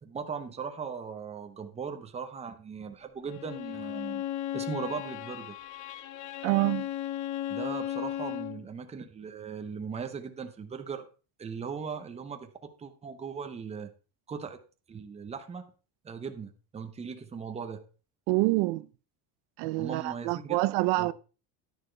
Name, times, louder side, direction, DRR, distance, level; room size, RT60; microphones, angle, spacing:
voice 1, 0.0-4.2 4.5-5.6 7.5-11.0 11.4-13.9 14.3-14.6 14.9-15.7 16.0-17.8 19.8-20.6 21.0-21.1, right 6 dB, 15° right, 0.8 m, -38 dB
Bowed string instrument, 3.3-8.6, left 12 dB, 45° left, 0.6 m, -36 dB
voice 2, 6.4-6.9 18.3-18.9 19.6-21.1, right 21 dB, 80° right, 0.6 m, -26 dB
10.5 x 10.0 x 3.3 m
cardioid pair, 170°, 43 cm